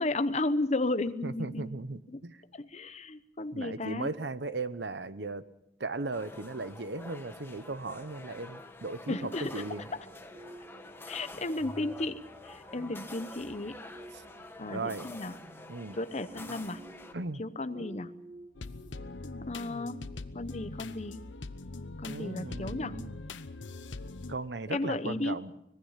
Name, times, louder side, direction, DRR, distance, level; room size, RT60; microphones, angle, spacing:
voice 1, 0.0-1.7 2.1-2.2 2.5-4.1 9.1-9.6 11.1-13.8 14.6-15.3 16.0-16.8 17.4-18.1 19.5-20.0 20.3-21.2 22.0-23.0 24.7-25.4, left 2 dB, 40° left, 12 dB, 0.9 m, -34 dB
voice 2, 1.2-2.4 3.5-5.4 5.8-9.9 14.1-14.2 14.7-15.1 15.7-16.0 17.1-17.4 22.1-23.1 24.3-25.5, right 3 dB, 70° right, 14 dB, 1.0 m, -37 dB
sound 1, 6.1-17.1, left 2 dB, 15° left, 1.4 m, -48 dB
sound 2, 9.1-19.3, right 1 dB, 35° right, 1.8 m, -52 dB
sound 3, 18.5-24.3, left 3 dB, 90° left, 0.9 m, -42 dB
25.0 x 19.5 x 5.8 m, 0.80 s
head